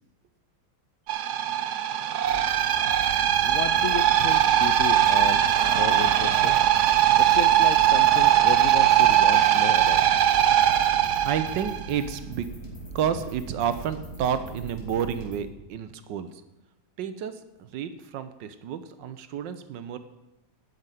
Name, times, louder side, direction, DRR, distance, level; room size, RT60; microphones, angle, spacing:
sound 1, 1.1-11.9, right 11 dB, 70° right, 1.2 m, -20 dB
sound 2, 2.2-15.4, right 3 dB, 35° left, 3.2 m, -40 dB
voice 1, 3.4-6.5 7.2-10.0, left 9 dB, 70° left, 9 dB, 0.7 m, -33 dB
voice 2, 11.2-12.5 12.9-16.4 17.0-20.0, right 8 dB, 85° right, 11 dB, 1.5 m, -30 dB
9.7 x 6.8 x 9.0 m, 0.94 s
omnidirectional pair, 1.9 m